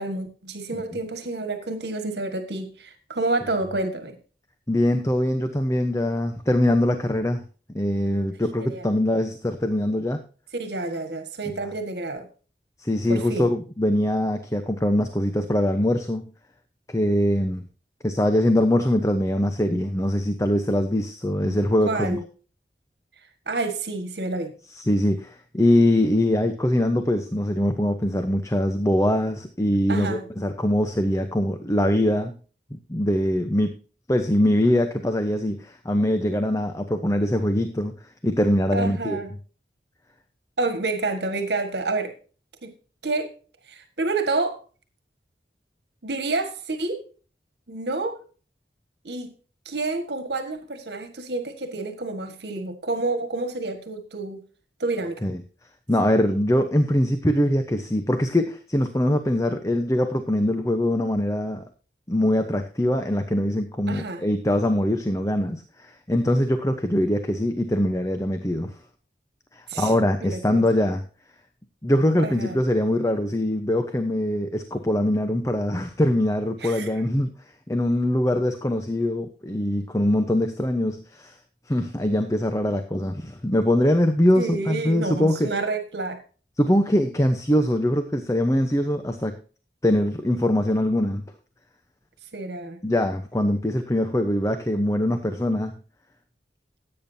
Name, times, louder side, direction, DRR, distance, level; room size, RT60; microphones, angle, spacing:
voice 1, 0.0-4.1 8.7-8.9 10.5-12.3 13.1-13.5 21.9-22.2 23.4-24.5 29.9-30.3 38.7-39.3 40.6-42.1 42.6-42.7 43.0-43.3 43.7-44.6 46.0-47.0 47.7-48.2 49.0-49.3 49.6-54.4 54.8-55.2 63.9-64.2 69.7-69.9 70.2-70.6 72.2-72.6 76.6-76.9 84.4-86.2 92.3-92.8, right 3 dB, 75° right, 1.7 m, -29 dB
voice 2, 4.7-7.4 7.7-10.2 12.8-16.3 16.9-17.6 18.0-22.2 24.7-32.3 32.9-33.8 34.1-37.9 38.2-39.2 55.2-55.4 55.9-61.7 62.1-68.8 69.5-71.0 71.8-77.3 77.7-81.4 81.7-85.5 86.6-89.4 89.8-91.2 92.8-95.8, left 1 dB, 20° left, 0.9 m, -23 dB
16.0 x 8.9 x 2.8 m
head